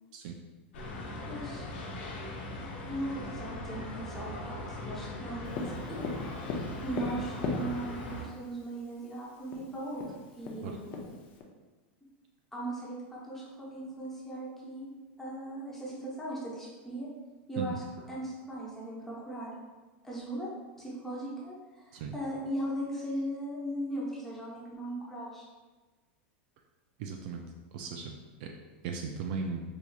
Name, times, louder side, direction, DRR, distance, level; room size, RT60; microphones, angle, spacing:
sound 1, 0.7-8.2, left 2 dB, 80° left, 0.8 m, -40 dB
voice 1, 1.0-1.6 2.9-5.6 5.9-6.1 6.8-10.0 10.4-10.9 12.5-14.9 15.2-17.1 17.5-17.7 18.1-19.5 20.0-20.5 20.8-25.4, right 1 dB, 5° left, -7 dB, 0.8 m, -38 dB
Tap, 5.5-8.1 9.1-9.2 9.5-9.6 10.0-11.4, left 3 dB, 35° left, 0.5 m, -36 dB
voice 2, 27.0-27.4 27.7-28.1 28.4-28.5 28.8-29.6, right 5 dB, 50° right, 2 dB, 0.3 m, -36 dB
4.6 x 2.7 x 2.3 m, 1.2 s
supercardioid pair, 160°, 6 cm